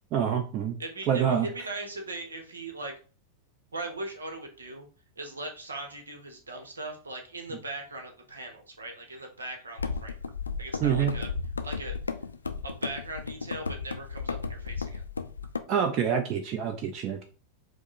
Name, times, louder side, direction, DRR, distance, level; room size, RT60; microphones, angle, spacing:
voice 1, 0.1-0.8 1.1-1.5 10.8-11.1 15.7-17.2, right 8 dB, 35° right, 4 dB, 0.6 m, -26 dB
voice 2, 0.8-2.9 3.7-4.9 5.2-10.1 10.6-11.3 11.6-12.0 12.6-15.0, right 2 dB, 75° right, 4 dB, 1.0 m, -39 dB
sound 1, 9.8-15.6, left 4 dB, 75° left, 0.4 m, -34 dB
4.6 x 2.2 x 4.4 m, 0.38 s
figure-of-eight pair, 90°, 0 cm